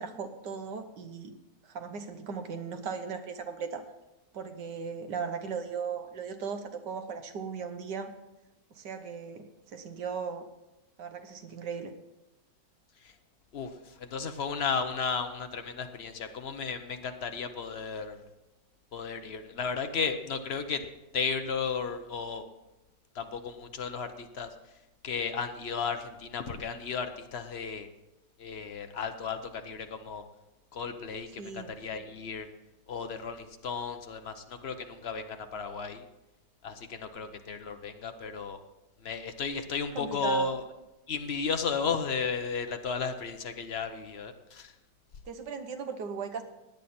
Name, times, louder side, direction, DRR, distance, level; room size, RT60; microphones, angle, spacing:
voice 1, 0.0-1.3 1.6-3.8 4.3-8.1 8.7-9.5 9.7-10.4 11.0-11.9 31.4-31.7 40.0-40.5 45.3-46.4, right 6 dB, 70° right, 7 dB, 1.7 m, -37 dB
voice 2, 13.5-18.2 18.9-20.8 21.1-22.4 23.1-24.5 25.0-27.9 28.4-30.2 30.7-32.5 32.9-36.0 36.6-38.6 39.0-40.6 41.1-44.7, left 5 dB, 45° left, 7 dB, 0.9 m, -34 dB
17.0 x 9.8 x 4.3 m, 0.98 s
omnidirectional pair, 1.9 m